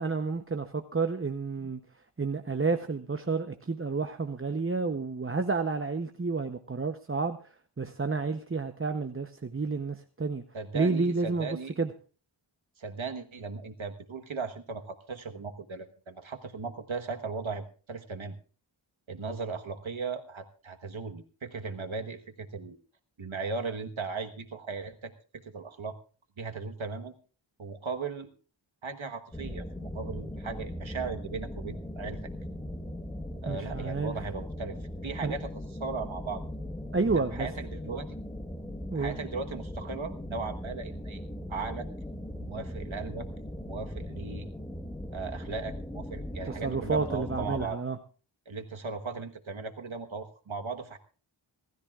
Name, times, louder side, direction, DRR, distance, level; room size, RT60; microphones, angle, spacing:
voice 1, 0.0-1.8 2.2-7.4 7.8-10.4 10.7-11.9 33.5-34.1 35.2-35.3 36.9-37.5 38.9-39.2 46.4-48.0, right 4 dB, 25° right, 7 dB, 0.8 m, -30 dB
voice 2, 10.5-11.7 12.8-18.3 19.1-22.8 23.2-25.1 25.5-25.9 26.4-27.1 27.6-28.3 28.8-32.2 33.4-34.8 35.0-35.5 35.8-36.4 37.0-38.1 38.9-41.2 41.5-41.9 42.4-43.3 43.6-44.5 45.1-47.8 48.5-51.0, right 4 dB, 75° right, 5 dB, 1.4 m, -37 dB
sound 1, 29.3-47.7, left 1 dB, 10° left, 1.3 m, -39 dB
27.0 x 13.5 x 2.4 m, 0.38 s
wide cardioid pair, 70°, 48 cm